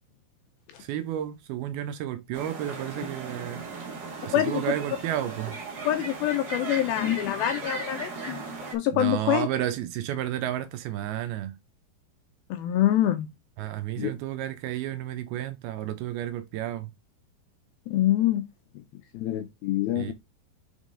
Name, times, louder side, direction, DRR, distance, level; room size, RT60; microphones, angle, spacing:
voice 1, 0.8-3.7 4.2-5.6 8.9-11.5 13.6-16.9 19.9-20.1, right 12 dB, 80° right, 2.4 m, -31 dB
sound 1, 2.3-8.7, right 3 dB, 35° right, 1.6 m, -37 dB
voice 2, 5.9-8.4 8.7-9.5 12.5-13.3 14.0-14.1 17.9-18.4 19.1-20.1, left 13 dB, 80° left, 2.2 m, -25 dB
8.1 x 3.7 x 3.7 m
omnidirectional pair, 4.8 m